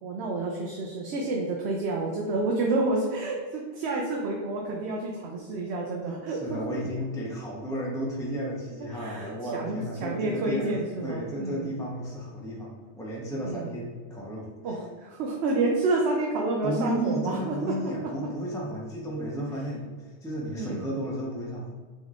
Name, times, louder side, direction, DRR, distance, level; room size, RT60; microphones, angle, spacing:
voice 1, 0.0-6.8 8.8-11.7 13.4-13.8 14.6-17.9 20.5-20.9, right 2 dB, 85° right, 0 dB, 0.9 m, -29 dB
voice 2, 6.3-10.7 11.0-14.8 16.6-19.9 20.2-21.7, right 1 dB, 5° left, -3 dB, 0.4 m, -33 dB
3.7 x 3.1 x 3.5 m, 1.5 s
omnidirectional pair, 1.1 m